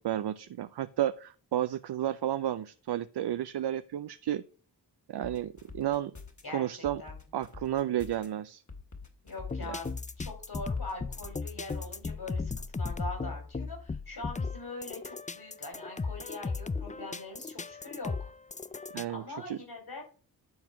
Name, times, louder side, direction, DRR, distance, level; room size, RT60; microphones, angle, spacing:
voice 1, 0.0-4.4 5.1-6.1 6.5-7.0 7.3-8.6 9.7-9.8 18.9-19.6, right 11 dB, 70° right, 12 dB, 0.5 m, -32 dB
sound 1, 5.2-6.4 6.8-8.3 8.7-10.1 10.5-12.0 12.4-12.5, left 4 dB, 45° left, 2.1 m, -47 dB
voice 2, 6.4-7.1 9.2-18.3 19.1-20.0, left 2 dB, 65° left, 2 dB, 5.4 m, -42 dB
sound 2, 9.4-19.0, left 4 dB, 20° left, 0.4 m, -36 dB
10.5 x 4.3 x 5.9 m, 0.39 s
cardioid pair, 45°, 42 cm